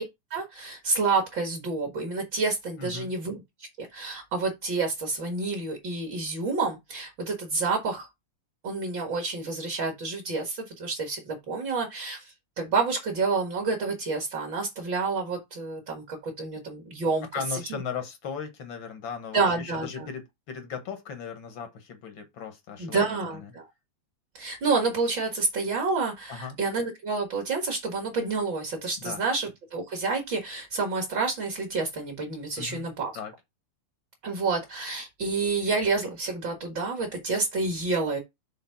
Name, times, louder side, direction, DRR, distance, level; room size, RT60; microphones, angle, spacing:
voice 1, 0.3-3.3 3.8-8.1 8.6-17.3 17.7-17.8 19.3-20.1 22.8-23.7 24.3-33.1 34.2-38.2, right 4 dB, 45° right, 2.1 m, -29 dB
voice 2, 2.8-3.1 17.3-23.5 26.3-26.6 29.0-29.2 32.6-32.8 33.1-33.3, left 6 dB, 55° left, 1.4 m, -37 dB
6.6 x 3.8 x 5.8 m
omnidirectional pair, 3.5 m